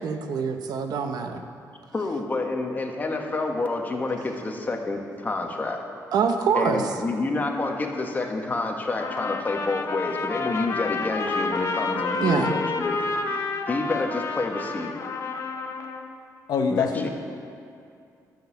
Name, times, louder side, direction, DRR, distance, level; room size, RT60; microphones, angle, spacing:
voice 1, 0.0-1.4 6.1-6.8 12.2-12.5, right 6 dB, 80° right, 6 dB, 0.9 m, -25 dB
voice 2, 1.9-5.8 6.5-13.0 13.3-13.4 13.7-14.9 16.7-17.1, left 2 dB, 25° left, 2 dB, 1.3 m, -28 dB
Trumpet, 9.0-16.1, left 4 dB, 45° left, 0.9 m, -29 dB
voice 3, 16.5-17.1, left 5 dB, 75° left, 5 dB, 1.0 m, -24 dB
11.5 x 6.4 x 7.1 m, 2.4 s
cardioid pair, 110°, 7 cm